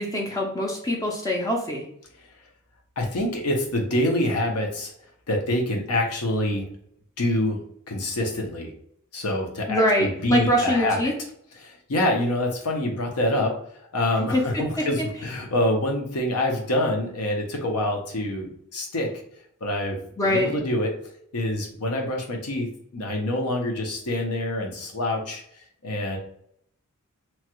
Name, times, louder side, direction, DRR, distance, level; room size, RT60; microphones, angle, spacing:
voice 1, 0.0-1.8 9.7-11.1 14.3-14.4 20.2-20.5, equal, 15° left, 0 dB, 0.4 m, -23 dB
voice 2, 3.0-4.9 5.3-6.7 7.2-7.6 7.9-8.7 9.1-11.1 11.6-13.6 13.9-19.1 19.6-20.0 20.2-20.9 21.3-25.4 25.8-26.2, left 1 dB, 85° left, 2 dB, 0.8 m, -26 dB
3.0 x 2.3 x 2.9 m, 0.71 s
head